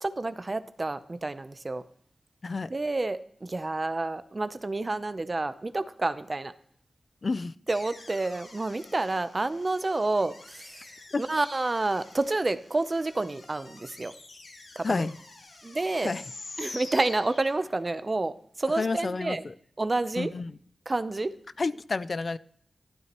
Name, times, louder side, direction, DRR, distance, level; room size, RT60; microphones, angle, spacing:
voice 1, 0.0-1.8 2.7-6.5 7.7-10.8 11.2-14.1 14.7-15.1 15.6-16.1 16.6-19.4 19.8-20.3 20.9-21.3, right 2 dB, 35° right, 12 dB, 0.7 m, -29 dB
voice 2, 7.2-7.5 11.1-11.3 14.8-15.1 16.0-16.2 18.8-19.5 20.2-20.6 21.6-22.4, left 3 dB, 55° left, 16 dB, 0.4 m, -30 dB
sound 1, 7.7-18.0, left 2 dB, 85° left, 2.1 m, -47 dB
12.5 x 12.0 x 3.0 m, 0.63 s
wide cardioid pair, 70°, 0 cm